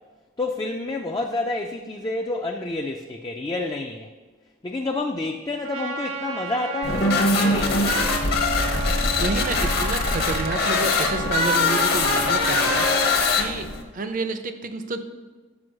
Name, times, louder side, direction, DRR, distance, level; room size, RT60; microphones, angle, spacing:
voice 1, 0.4-4.1 4.6-8.0, left 2 dB, 20° left, 2 dB, 0.3 m, -29 dB
Trumpet, 5.6-13.2, right 2 dB, 85° right, 1.0 m, -33 dB
sound 1, 6.8-13.8, left 3 dB, 50° left, 0.9 m, -22 dB
voice 2, 9.2-12.9 13.3-13.7 13.9-15.0, right 3 dB, 40° right, 8 dB, 0.5 m, -29 dB
6.2 x 5.1 x 6.3 m, 1.3 s
head